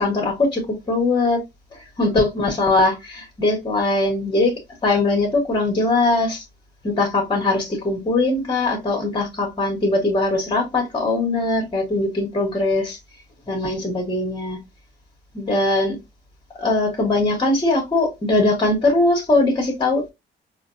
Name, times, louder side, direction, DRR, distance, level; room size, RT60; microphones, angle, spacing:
voice 1, 0.0-1.4 1.7-6.4 6.8-13.0 13.5-14.6 15.3-16.0 16.6-20.1, left 2 dB, 25° left, 1.5 m, -21 dB
4.4 x 2.3 x 2.5 m
cardioid pair, 90°, 20 cm